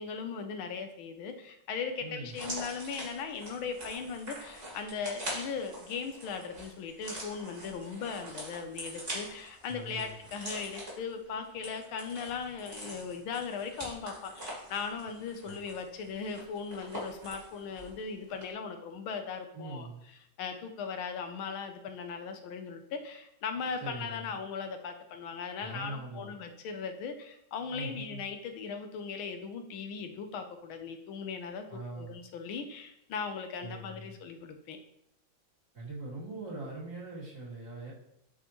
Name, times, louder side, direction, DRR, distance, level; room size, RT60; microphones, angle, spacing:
voice 1, 0.0-19.9 20.4-34.8, left 5 dB, 80° left, 6 dB, 1.6 m, -38 dB
voice 2, 2.0-2.4 9.7-10.1 15.4-15.5 19.5-20.0 23.8-24.4 25.6-26.4 27.7-28.2 31.7-32.2 33.6-34.1 35.7-37.9, right 2 dB, 50° right, -9 dB, 3.6 m, -42 dB
sound 1, 2.3-18.0 18.3-18.4, right 1 dB, 25° right, 2.9 m, -44 dB
8.7 x 6.3 x 3.0 m, 0.77 s
omnidirectional pair, 2.2 m